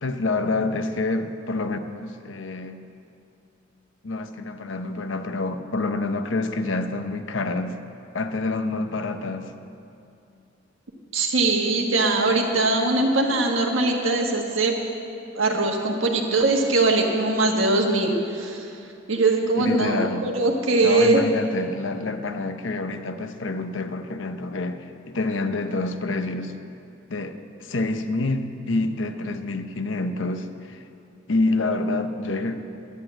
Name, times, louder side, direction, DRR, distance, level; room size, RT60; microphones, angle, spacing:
voice 1, 0.0-2.8 4.0-7.8 8.1-9.5 19.6-20.3 20.8-26.5 27.1-30.8 31.3-32.6, left 2 dB, 70° left, 8 dB, 0.8 m, -27 dB
voice 2, 11.1-14.7 15.3-18.7 19.1-21.2, right 2 dB, 80° right, 2 dB, 1.5 m, -21 dB
10.5 x 10.5 x 7.7 m, 2.6 s
head